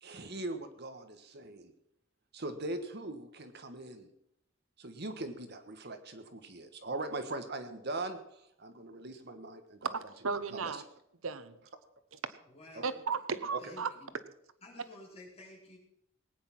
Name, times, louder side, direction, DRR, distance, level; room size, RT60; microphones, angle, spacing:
voice 1, 0.0-1.7 2.3-4.1 4.8-8.2 8.6-9.9 10.6-10.8 13.5-13.6, right 2 dB, 55° right, 8 dB, 1.4 m, -40 dB
voice 2, 9.9-10.8 11.2-11.6 12.1-12.2 12.8-13.9, right 5 dB, 85° right, 13 dB, 1.0 m, -35 dB
voice 3, 12.4-13.0 13.6-14.2 14.6-15.8, left 1 dB, 30° left, -2 dB, 4.1 m, -52 dB
19.5 x 9.5 x 5.9 m, 0.76 s
head